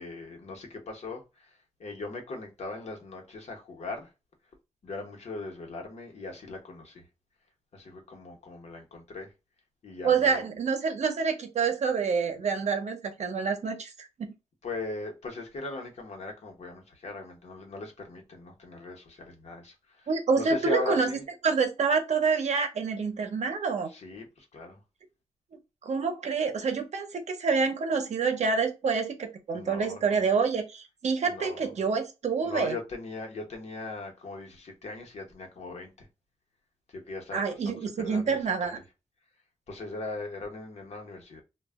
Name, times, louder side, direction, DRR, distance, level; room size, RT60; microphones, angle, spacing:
voice 1, 0.0-4.1 4.8-7.1 7.7-9.3 9.8-10.4 14.6-21.2 23.9-24.8 29.5-30.2 31.2-31.7 32.4-36.1 36.9-38.7 39.7-41.4, left 3 dB, 70° left, 0.9 m, -39 dB
voice 2, 10.0-14.3 20.1-21.1 21.4-23.9 25.8-32.8 37.3-38.8, right 5 dB, 80° right, 0.6 m, -27 dB
2.2 x 2.1 x 3.4 m
wide cardioid pair, 155°, 12 cm